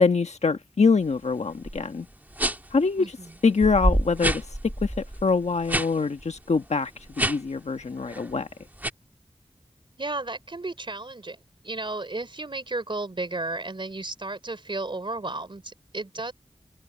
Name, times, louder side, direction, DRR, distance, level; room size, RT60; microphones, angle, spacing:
voice 1, 0.0-2.1 2.7-3.1 3.4-4.4 4.8-4.9 5.2-6.9 7.2-8.5, left 4 dB, 90° left, 1.3 m, -24 dB
sound 1, 1.6-1.8 2.3-2.8 3.3-3.4 3.6-5.9 6.2-6.4 7.1-7.6 8.0-8.3 8.8-8.9, right 1 dB, 15° right, 1.9 m, -27 dB
voice 2, 3.0-3.3 10.0-16.3, right 2 dB, 50° right, 4.0 m, -33 dB
wide cardioid pair, 70°, 11 cm